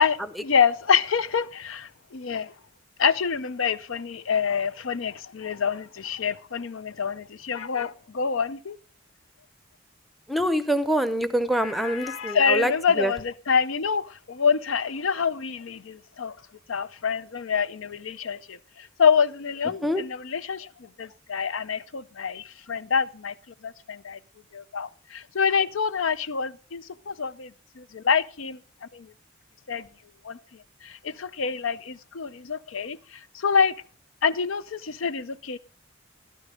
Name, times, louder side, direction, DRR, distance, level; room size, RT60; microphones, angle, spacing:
voice 1, 0.0-2.5 3.0-8.8 11.6-16.4 16.7-23.3 23.6-24.2 24.5-29.1 29.7-29.9 30.2-30.4 30.8-33.7 34.2-35.6, left 6 dB, 85° left, 0.6 m, -26 dB
voice 2, 10.3-13.1 19.8-20.0, equal, ahead, 0.6 m, -25 dB
13.0 x 12.0 x 3.7 m
head